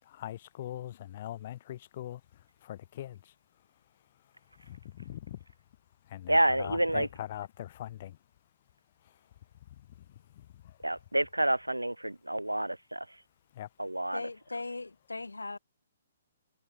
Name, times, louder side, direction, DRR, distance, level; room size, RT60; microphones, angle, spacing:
voice 1, 0.0-3.3 4.6-5.4 6.1-8.2 9.0-9.1 9.7-10.1 10.3-10.8 13.5-13.7, left 12 dB, 40° left, 4.1 m, -42 dB
voice 2, 6.3-7.1 10.8-13.0 13.8-14.2, right 1 dB, 90° right, 1.0 m, -28 dB
voice 3, 14.1-15.6, left 3 dB, 80° left, 2.7 m, -38 dB
figure-of-eight pair, 125°, 0 cm